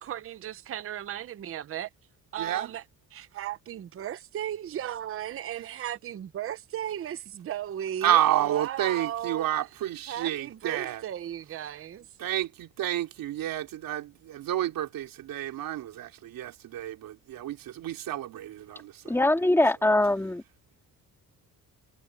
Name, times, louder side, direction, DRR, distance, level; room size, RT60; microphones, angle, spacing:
voice 1, 0.0-1.9 2.3-2.8 3.1-9.5 10.1-12.0, right 11 dB, 40° right, 0.7 m, -35 dB
voice 2, 2.4-2.7 8.0-11.0 12.2-19.1, right 12 dB, 80° right, 3.3 m, -30 dB
voice 3, 19.0-20.4, left 1 dB, 5° left, 3.1 m, -22 dB
cardioid pair, 160°, 34 cm